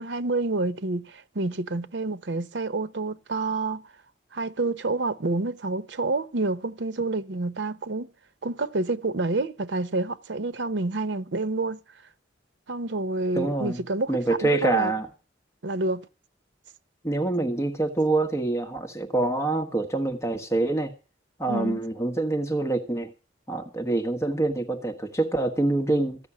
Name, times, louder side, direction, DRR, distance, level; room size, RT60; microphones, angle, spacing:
voice 1, 0.0-3.8 4.3-8.1 8.4-11.8 12.7-14.9 15.6-16.1 21.5-21.8, right 2 dB, 80° right, 0.8 m, -28 dB
voice 2, 13.3-13.8 14.1-15.1 17.0-20.9 21.4-23.1 23.5-26.2, right 2 dB, 15° left, 1.3 m, -26 dB
15.0 x 6.4 x 9.9 m
head